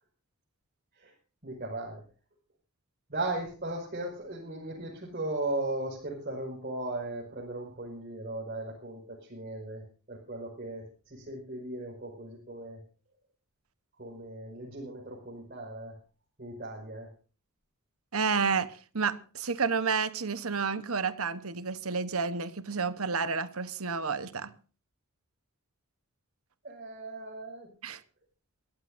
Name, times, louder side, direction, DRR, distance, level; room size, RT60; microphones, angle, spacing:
voice 1, 1.4-2.0 3.1-12.8 14.0-16.0 16.4-17.1 26.6-27.7, right 2 dB, 45° right, 5.9 m, -37 dB
voice 2, 18.1-24.5 27.8-28.0, right 5 dB, 75° right, 1.2 m, -30 dB
24.0 x 15.0 x 2.7 m
head